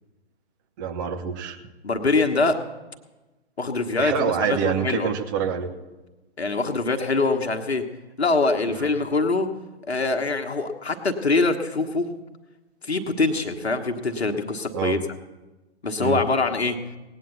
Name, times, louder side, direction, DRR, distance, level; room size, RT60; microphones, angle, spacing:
voice 1, 0.8-1.6 4.0-5.7 8.7-8.9 14.7-15.0 16.0-16.2, right 8 dB, 20° right, 6 dB, 0.8 m, -26 dB
voice 2, 1.8-2.6 3.6-5.1 6.4-7.8 8.2-9.5 9.9-12.1 12.8-15.0 15.8-16.8, left 3 dB, 70° left, 4 dB, 1.3 m, -24 dB
18.0 x 9.0 x 6.9 m, 1.1 s
figure-of-eight pair, 130°, 33 cm